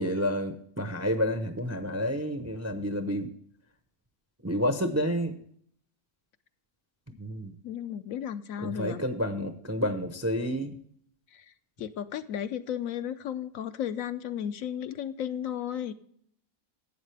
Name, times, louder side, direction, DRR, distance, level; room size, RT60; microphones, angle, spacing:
voice 1, 0.0-3.3 4.4-5.4 7.2-7.5 8.6-10.8, equal, 20° right, 7 dB, 0.5 m, -29 dB
voice 2, 7.6-9.0 11.3-11.5 11.8-15.9, left 9 dB, 70° left, 11 dB, 1.0 m, -34 dB
12.0 x 8.4 x 3.3 m, 0.63 s
omnidirectional pair, 1.6 m